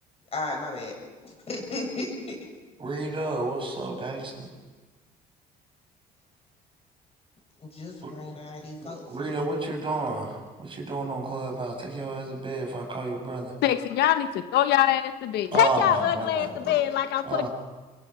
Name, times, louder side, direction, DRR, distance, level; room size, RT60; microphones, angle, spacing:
voice 1, 0.3-0.9 1.2-2.4 7.6-9.5, left 2 dB, 35° left, 1 dB, 7.7 m, -35 dB
voice 2, 2.8-4.5 8.0-8.2 8.8-13.5 15.5-16.8 17.2-17.5, right 2 dB, 30° right, 2 dB, 6.2 m, -31 dB
voice 3, 13.6-17.5, left 11 dB, 80° left, 10 dB, 1.1 m, -24 dB
25.5 x 22.0 x 6.2 m, 1.3 s
cardioid pair, 110°, 17 cm